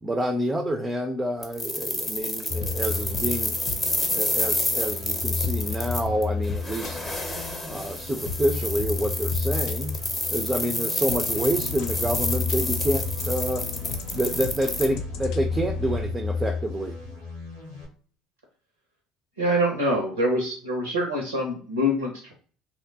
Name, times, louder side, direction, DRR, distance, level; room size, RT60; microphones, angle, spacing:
voice 1, 0.0-3.6 4.1-7.0 7.7-10.0 10.3-13.7 14.1-17.0, right 1 dB, 15° right, 5 dB, 0.4 m, -28 dB
sound 1, 1.4-14.9, left 1 dB, 20° left, 0.8 m, -29 dB
sound 2, 2.5-17.9, left 5 dB, 90° left, 1.1 m, -33 dB
sound 3, 2.6-4.1 5.4-7.3 8.3-9.7 10.4-16.1, left 5 dB, 60° left, 0.3 m, -37 dB
voice 2, 19.4-22.3, equal, 85° right, 1 dB, 0.5 m, -25 dB
2.9 x 2.1 x 2.7 m, 0.44 s
hypercardioid pair, 65°, 0 cm